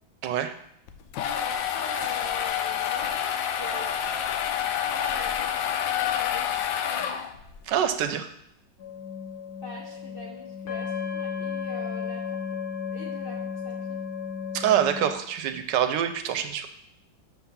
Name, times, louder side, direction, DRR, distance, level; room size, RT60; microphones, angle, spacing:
voice 1, 0.2-0.5 7.7-8.3 14.5-16.7, right 10 dB, 80° right, 8 dB, 1.2 m, -25 dB
sound 1, 0.9-7.6, left 9 dB, 85° left, 1.3 m, -28 dB
voice 2, 1.2-7.2 9.6-14.0, left 2 dB, 40° left, -2 dB, 1.0 m, -43 dB
sound 2, 8.8-15.1, left 6 dB, 60° left, 1.7 m, -34 dB
6.4 x 4.0 x 5.6 m, 0.73 s
omnidirectional pair, 2.0 m